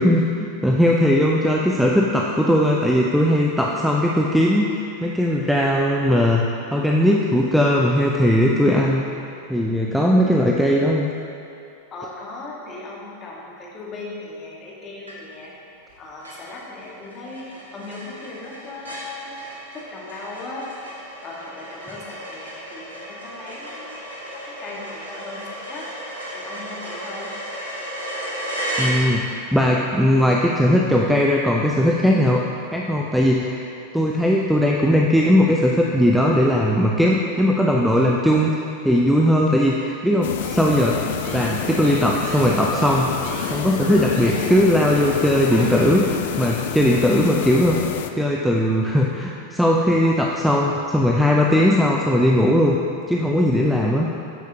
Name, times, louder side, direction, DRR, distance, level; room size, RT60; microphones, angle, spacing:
voice 1, 0.0-9.0 9.5-11.1 28.8-32.4 32.7-33.6 33.9-38.5 38.8-41.0 41.3-43.1 43.4-52.8 53.1-54.1, equal, ahead, -2 dB, 0.5 m, -19 dB
voice 2, 11.9-15.5 15.9-19.4 19.7-20.7 21.2-24.0 24.4-27.3, left 2 dB, 25° left, -4 dB, 1.7 m, -37 dB
sound 1, 15.1-15.5 15.9-16.0 16.2-29.5, right 1 dB, 75° right, 1.4 m, -33 dB
sound 2, 40.2-48.1, left 10 dB, 55° left, 0.4 m, -29 dB
sound 3, 40.4-44.6 44.8-45.2 45.4-46.3, right 2 dB, 40° right, 1.3 m, -33 dB
12.0 x 5.8 x 2.8 m, 2.5 s
figure-of-eight pair, 90°, 0 cm